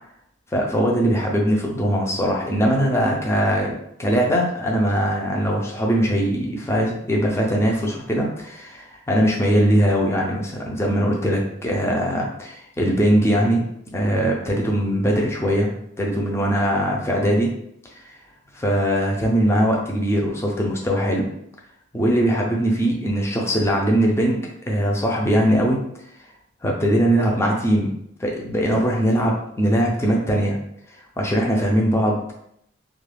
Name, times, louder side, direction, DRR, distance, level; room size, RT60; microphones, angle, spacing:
voice 1, 0.5-13.7 13.9-15.7 16.0-17.5 18.5-21.3 21.9-25.8 26.6-30.6 31.2-32.3, equal, 15° left, -1 dB, 0.4 m, -21 dB
2.3 x 2.3 x 3.2 m, 0.73 s
head